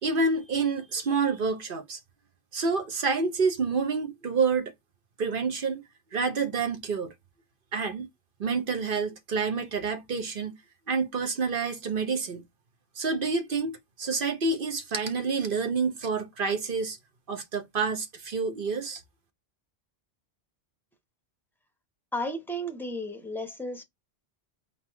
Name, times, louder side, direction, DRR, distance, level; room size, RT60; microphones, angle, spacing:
voice 1, 0.0-2.0 2.5-4.7 5.2-5.8 6.1-7.1 7.7-8.1 8.4-10.6 10.9-12.4 13.0-17.0 17.3-19.0, right 4 dB, 55° right, 1.1 m, -28 dB
voice 2, 22.1-23.8, equal, ahead, 0.7 m, -33 dB
3.9 x 2.9 x 4.5 m
omnidirectional pair, 1.1 m